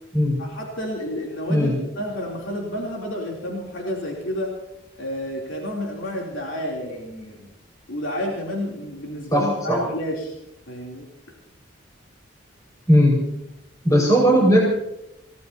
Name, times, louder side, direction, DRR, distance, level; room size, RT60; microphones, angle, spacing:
voice 1, 0.4-4.6 5.0-7.5 7.9-10.3 10.7-11.4, equal, 90° left, -2 dB, 3.3 m, -30 dB
voice 2, 9.3-9.8 12.9-13.2 13.8-14.6, equal, 20° left, -3 dB, 5.3 m, -17 dB
28.5 x 17.5 x 2.9 m, 0.83 s
head